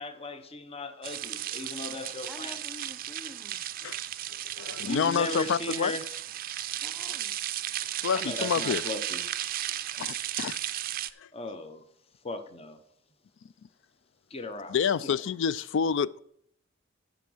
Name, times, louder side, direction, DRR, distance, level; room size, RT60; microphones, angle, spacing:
voice 1, 0.0-2.6 4.8-6.1 8.1-9.2 11.3-11.9 12.2-12.8 14.3-14.8 15.0-15.2, left 2 dB, 30° left, 0.8 m, -37 dB
sound 1, 1.0-11.1, right 12 dB, 45° right, 0.4 m, -35 dB
voice 2, 2.3-3.6 6.7-7.4, left 2 dB, ahead, 0.8 m, -47 dB
voice 3, 4.6-5.9 8.0-8.8 10.0-10.6 11.2-11.3 14.7-16.2, left 6 dB, 65° left, 0.4 m, -28 dB
11.5 x 5.2 x 6.2 m
head